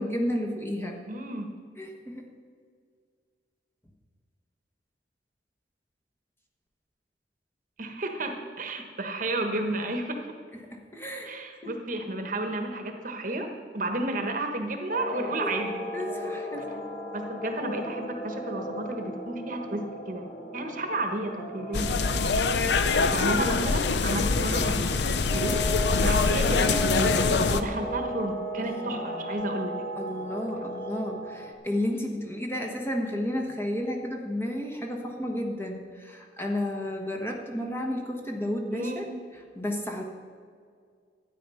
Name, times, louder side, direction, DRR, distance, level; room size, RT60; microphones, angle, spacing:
voice 1, 0.0-1.0 1.8-2.2 10.7-11.3 11.6-11.7 15.4-15.6 15.9-16.8 23.1-23.3 28.8-29.0 30.0-39.0 39.5-40.0, left 1 dB, 15° left, 1 dB, 1.2 m, -32 dB
voice 2, 1.1-1.5 7.8-10.2 11.2-13.5 13.7-15.9 17.1-20.2 20.5-22.1 23.1-25.6 26.0-27.3 27.5-29.7 38.7-39.1, right 1 dB, 45° right, 4 dB, 1.2 m, -32 dB
sound 1, 14.9-31.5, equal, 45° left, 1.3 m, -36 dB
sound 2, 21.7-27.6, left 4 dB, 70° left, 0.6 m, -24 dB
12.5 x 9.4 x 5.6 m, 2.1 s
head